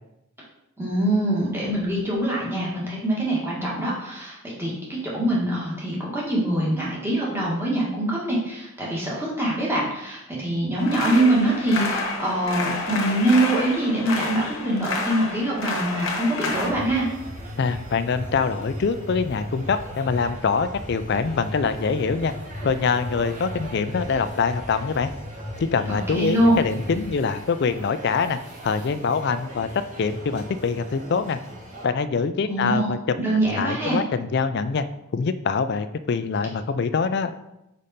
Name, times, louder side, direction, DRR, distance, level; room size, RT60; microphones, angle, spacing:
voice 1, 0.8-17.0 26.1-26.6 32.4-34.0, right 1 dB, 10° right, -6 dB, 1.6 m, -24 dB
sound 1, 10.8-16.7, left 3 dB, 70° left, 1.1 m, -29 dB
sound 2, 16.5-31.9, equal, 35° right, 1.4 m, -37 dB
voice 2, 17.6-22.3 22.6-25.1 25.6-31.4 31.8-33.0 33.5-34.9 35.1-37.3, left 5 dB, 50° left, 11 dB, 0.4 m, -24 dB
5.1 x 5.1 x 4.2 m, 0.87 s
head